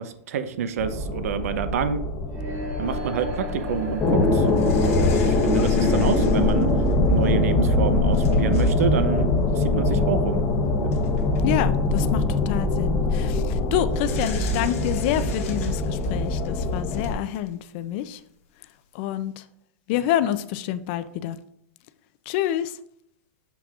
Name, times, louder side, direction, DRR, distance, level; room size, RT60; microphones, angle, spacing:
voice 1, 0.0-2.0 2.8-4.5 4.8-6.7 7.1-10.5 10.8-10.9, right 7 dB, 80° right, 10 dB, 0.7 m, -28 dB
sound 1, 0.8-17.1, left 2 dB, 25° left, 0.9 m, -23 dB
sound 2, 2.3-8.2, right 1 dB, 35° right, 1.4 m, -36 dB
sound 3, 4.5-7.1 7.7-7.8 8.1-8.9 9.1-9.3 10.4-10.5 10.9-11.4 12.1-12.5 13.9-17.6 18.0-18.1, left 7 dB, 65° left, 1.5 m, -43 dB
voice 2, 11.4-18.2 18.9-19.4 19.9-21.4 22.3-22.7, left 12 dB, 45° left, 13 dB, 0.4 m, -27 dB
6.8 x 6.0 x 2.4 m, 0.72 s
supercardioid pair, 145°, 8 cm